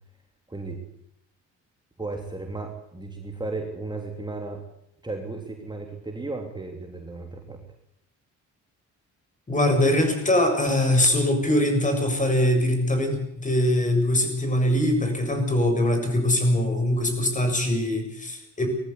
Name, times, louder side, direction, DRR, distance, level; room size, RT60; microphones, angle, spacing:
voice 1, 0.5-0.8 2.0-4.6 5.0-7.6, right 3 dB, 15° right, 2 dB, 3.2 m, -34 dB
voice 2, 9.5-18.7, left 1 dB, 25° left, 5 dB, 7.1 m, -22 dB
19.5 x 14.5 x 9.7 m, 0.77 s
cardioid pair, 90°, 30 cm